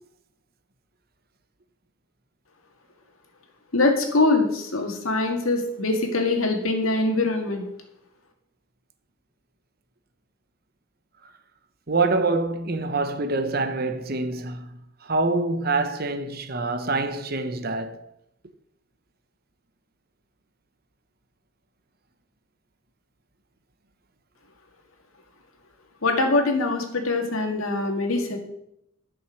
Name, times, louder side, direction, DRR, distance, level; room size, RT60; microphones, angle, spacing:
voice 1, 3.7-7.6 26.0-28.4, left 2 dB, 90° left, 2.0 m, -23 dB
voice 2, 11.9-14.7 15.0-18.0, right 3 dB, 45° right, 0.9 m, -25 dB
11.0 x 6.2 x 6.2 m
head